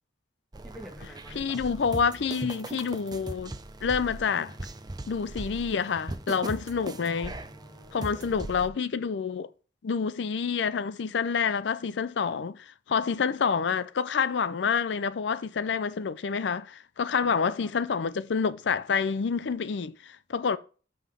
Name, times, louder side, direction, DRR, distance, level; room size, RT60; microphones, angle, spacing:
sound 1, 0.5-8.7, right 2 dB, 20° right, 0.5 m, -39 dB
voice 1, 0.6-1.6 7.1-8.6 17.2-17.7, equal, ahead, 1.4 m, -49 dB
voice 2, 1.4-3.5 3.8-4.6 5.1-7.4 7.9-9.5 9.8-20.6, left 6 dB, 65° left, 0.4 m, -28 dB
5.6 x 5.5 x 6.1 m
head